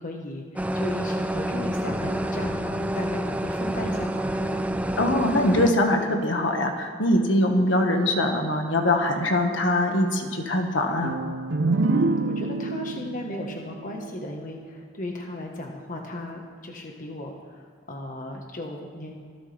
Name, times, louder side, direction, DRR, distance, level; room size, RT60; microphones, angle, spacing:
voice 1, 0.0-4.6 11.9-19.2, left 1 dB, 45° left, 1 dB, 1.5 m, -36 dB
sound 1, 0.6-5.7, right 1 dB, 5° right, 0.5 m, -28 dB
voice 2, 5.0-11.2, left 1 dB, 70° left, 3 dB, 1.7 m, -23 dB
sound 2, 11.0-14.7, right 3 dB, 65° right, 0.6 m, -27 dB
25.5 x 12.5 x 3.5 m, 2.1 s
head